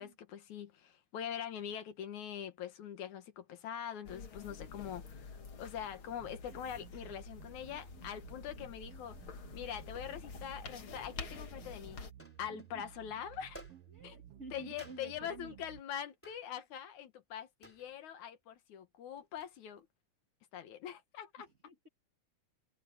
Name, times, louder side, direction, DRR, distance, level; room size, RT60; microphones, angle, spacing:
voice 1, 0.0-9.2 9.5-12.1 12.4-13.6 14.0-14.2 14.5-19.9 20.5-21.5, left 9 dB, 70° left, 2.7 m, -43 dB
sound 1, 4.0-12.1, left 5 dB, 45° left, 2.5 m, -49 dB
sound 2, 6.2-15.8, right 11 dB, 70° right, 1.5 m, -55 dB
sound 3, 12.2-12.8 13.5-14.2 14.8-15.3 16.2-16.5 17.6-18.0 19.2-19.6, equal, 5° left, 3.1 m, -55 dB
voice 2, 13.9-15.7 21.7-21.9, right 3 dB, 25° right, 1.9 m, -52 dB
omnidirectional pair, 3.5 m